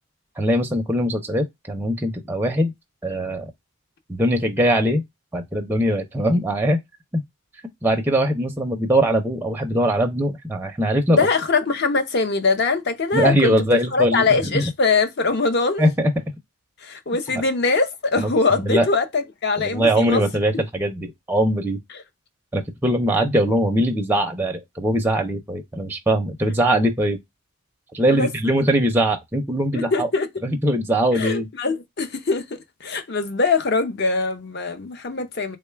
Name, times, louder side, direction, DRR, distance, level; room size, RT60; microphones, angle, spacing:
voice 1, 0.4-2.7 3.0-3.5 4.1-5.0 5.3-6.8 7.1-7.2 7.8-11.3 13.1-14.7 15.8-16.1 17.3-17.4 18.2-18.3 18.6-18.9 19.6-21.8 22.5-27.2 27.9-30.1 30.4-31.5, right 1 dB, 10° right, 0.4 m, -21 dB
voice 2, 11.1-13.6 13.9-15.8 16.8-20.2 20.5-20.6 21.9-22.0 28.1-28.3 29.7-30.3 31.1-32.4 32.8-35.6, left 4 dB, 50° left, 0.6 m, -22 dB
3.7 x 2.2 x 3.2 m
head